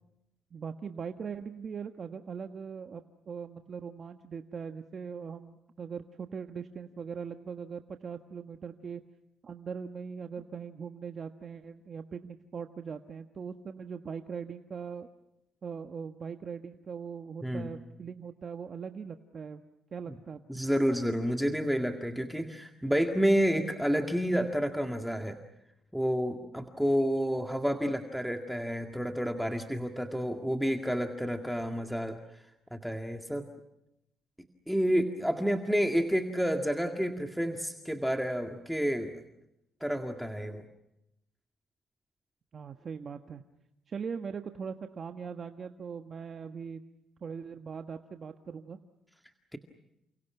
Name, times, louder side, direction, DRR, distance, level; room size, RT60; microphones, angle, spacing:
voice 1, 0.5-9.0 9.4-15.1 15.6-19.6 19.9-20.6 42.5-43.4 43.9-46.8 47.2-48.8, right 6 dB, 45° right, 6 dB, 1.3 m, -40 dB
voice 2, 17.4-17.7 20.1-20.2 20.5-25.4 25.9-32.2 32.7-33.5 34.7-39.2 39.8-40.7 49.5-49.6, equal, ahead, 4 dB, 2.0 m, -29 dB
30.0 x 28.0 x 5.9 m, 0.87 s
cardioid pair, 90°, 0 cm